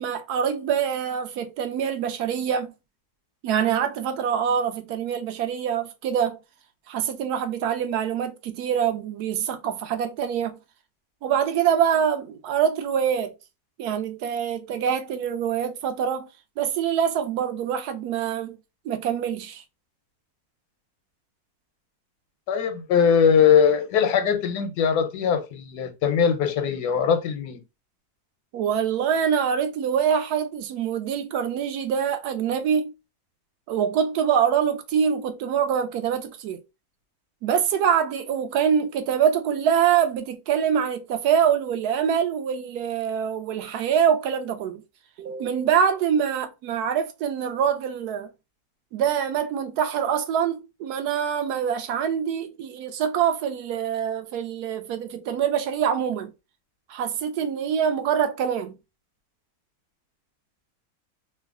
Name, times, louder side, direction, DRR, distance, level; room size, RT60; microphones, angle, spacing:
voice 1, 0.0-2.7 3.4-6.4 6.9-10.6 11.2-13.3 13.8-16.3 16.6-18.6 18.8-19.6 28.5-32.9 33.7-36.6 37.4-44.8 45.2-48.3 48.9-56.3 56.9-58.8, right 8 dB, 85° right, 1.1 m, -25 dB
voice 2, 22.5-27.6, left 7 dB, 90° left, 1.2 m, -21 dB
3.1 x 2.1 x 3.4 m
omnidirectional pair, 1.6 m